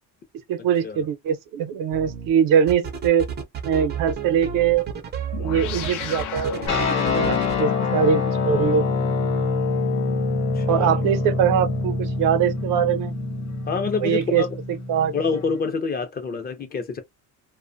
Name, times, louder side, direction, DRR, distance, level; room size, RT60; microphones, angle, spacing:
voice 1, 0.5-3.3 3.6-4.9 5.4-6.6 7.1-8.9 10.7-13.1 14.0-14.4 14.9-15.1, right 8 dB, 80° right, 0.6 m, -22 dB
sound 1, 1.9-2.3 2.7-7.6, right 7 dB, 35° right, 0.4 m, -32 dB
sound 2, 5.3-14.1, left 8 dB, 75° left, 0.6 m, -35 dB
voice 2, 5.4-5.9 7.6-7.8 10.6-11.0 13.7-14.6 15.1-17.0, left 5 dB, 30° left, 0.5 m, -28 dB
sound 3, 6.7-15.6, left 3 dB, 55° left, 0.9 m, -25 dB
2.4 x 2.1 x 2.5 m
cardioid pair, 145°, 32 cm